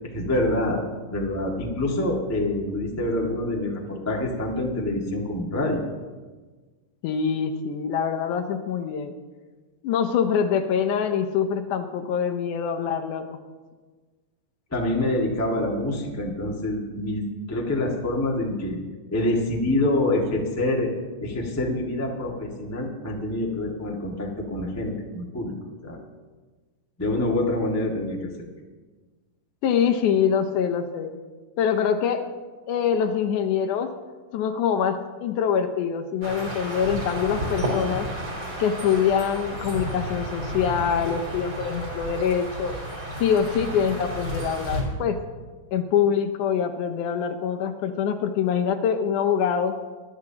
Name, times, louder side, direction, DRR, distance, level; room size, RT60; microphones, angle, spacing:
voice 1, 0.1-5.8 14.7-18.8 19.1-20.9 21.2-25.5 25.8-26.0 27.0-28.3, left 1 dB, 20° left, -2 dB, 0.4 m, -26 dB
voice 2, 7.0-9.1 9.8-13.2 29.6-31.1 31.6-32.2 32.7-33.9 34.3-38.1 38.6-42.8 43.2-45.2 45.7-49.7, left 7 dB, 75° left, 6 dB, 2.1 m, -24 dB
sound 1, 36.2-44.8, right 1 dB, 30° right, 3.7 m, -32 dB
21.0 x 11.5 x 2.9 m, 1.4 s
omnidirectional pair, 3.9 m